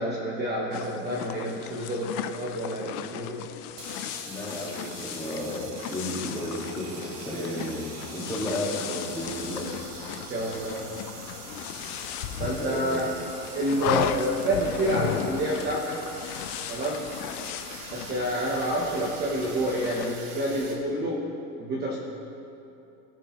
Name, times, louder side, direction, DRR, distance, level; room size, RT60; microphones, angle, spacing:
voice 1, 0.0-3.5 10.3-10.9 12.4-13.1 13.5-16.0 16.7-17.1 17.9-21.3 21.6-22.0, right 1 dB, 20° right, -4 dB, 1.0 m, -28 dB
sound 1, 0.7-20.2, left 11 dB, 65° left, 0.7 m, -36 dB
sound 2, 3.7-20.7, right 4 dB, 85° right, 2.0 m, -43 dB
voice 2, 4.2-9.7 12.5-13.0, left 1 dB, 5° left, -5 dB, 1.9 m, -33 dB
19.0 x 6.6 x 3.1 m, 2.8 s
supercardioid pair, 150°, 50 cm